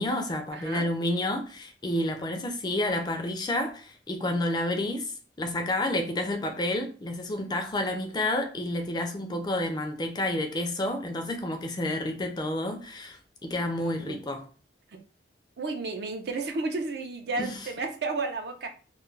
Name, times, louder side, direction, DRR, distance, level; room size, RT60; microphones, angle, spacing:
voice 1, 0.0-14.4 17.4-17.7, left 1 dB, 25° left, 0.3 m, -30 dB
voice 2, 0.5-0.9 14.0-14.2 14.9-15.0 15.6-18.7, right 3 dB, 65° right, 0.5 m, -32 dB
2.3 x 2.2 x 3.1 m
head